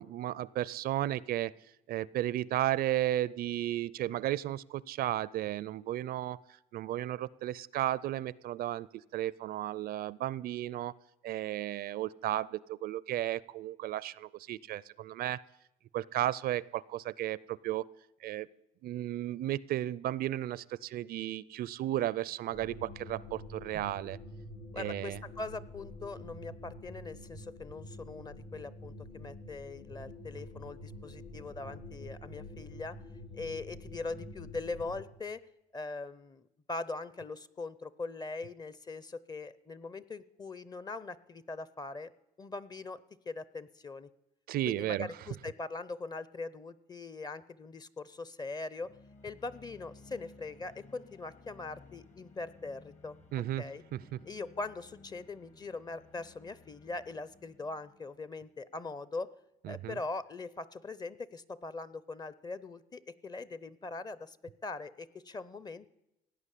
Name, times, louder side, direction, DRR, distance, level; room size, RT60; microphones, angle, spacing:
voice 1, 0.0-1.5 1.9-6.4 6.7-8.9 9.1-10.9 11.2-15.4 15.9-17.9 18.2-18.5 18.8-24.2 24.8-25.2 44.5-45.1 53.3-53.6 53.9-54.2 59.6-60.0, right 13 dB, 65° right, 22 dB, 0.5 m, -34 dB
sound 1, 22.5-35.0, left 1 dB, 90° left, 3.8 m, -47 dB
voice 2, 24.7-33.0 33.3-35.4 35.7-42.1 42.4-43.0 43.3-44.1 44.7-48.9 49.2-53.2 53.6-53.8 54.2-59.3 59.7-64.4 64.6-65.9, left 3 dB, 25° left, 17 dB, 0.7 m, -41 dB
sound 2, 48.8-58.8, left 3 dB, 45° left, 1.7 m, -58 dB
16.5 x 9.5 x 8.4 m, 0.87 s
cardioid pair, 110°, 17 cm